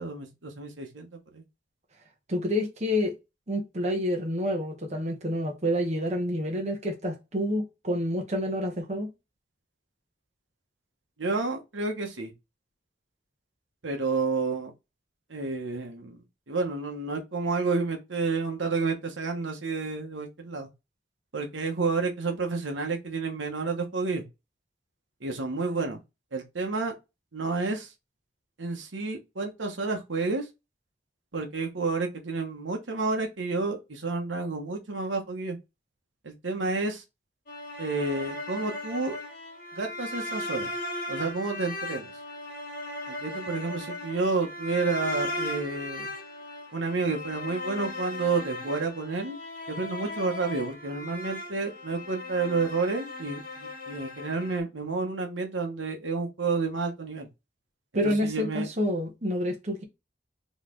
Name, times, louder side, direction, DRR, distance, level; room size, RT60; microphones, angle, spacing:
voice 1, 0.0-1.4 11.2-12.3 13.8-14.7 15.3-20.7 21.3-24.2 25.2-26.0 26.3-26.9 27.3-27.9 28.6-30.5 31.3-35.6 36.2-37.0 37.8-39.1 39.7-40.7 41.1-42.1 43.1-46.1 46.7-49.4 49.7-57.3 58.0-58.7, right 3 dB, 80° right, 1.1 m, -30 dB
voice 2, 2.3-3.2 3.5-9.1 57.9-59.8, equal, 35° right, 1.1 m, -28 dB
sound 1, 37.5-54.6, left 1 dB, 50° left, 1.3 m, -37 dB
4.0 x 3.1 x 3.8 m
head